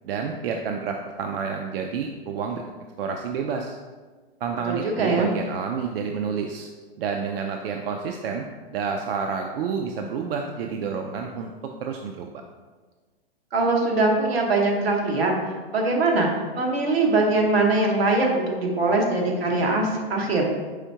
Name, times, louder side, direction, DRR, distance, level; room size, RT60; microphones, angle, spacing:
voice 1, 0.0-2.7 3.0-3.8 4.4-6.7 7.0-8.5 8.7-11.5 11.8-12.3, right 6 dB, 70° right, 3 dB, 0.5 m, -29 dB
voice 2, 4.7-5.3 13.5-15.4 15.7-20.4, right 2 dB, 90° right, 0 dB, 1.1 m, -22 dB
4.9 x 3.5 x 2.8 m, 1.4 s
hypercardioid pair, 135°, 30 cm